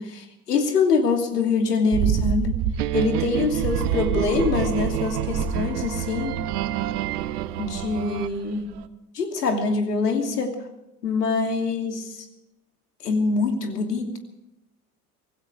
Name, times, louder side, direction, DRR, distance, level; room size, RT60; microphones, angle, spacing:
voice 1, 0.0-2.6 2.9-6.4 7.6-8.7 9.1-10.5 11.0-12.3 13.0-14.2, left 4 dB, 85° left, 4 dB, 2.9 m, -24 dB
sound 1, 1.9-8.3 8.6-8.8, right 8 dB, 55° right, 1.4 m, -29 dB
sound 2, 2.8-8.3, right 13 dB, 75° right, 1.0 m, -29 dB
25.0 x 16.0 x 3.4 m, 0.91 s
hypercardioid pair, 70°, 46 cm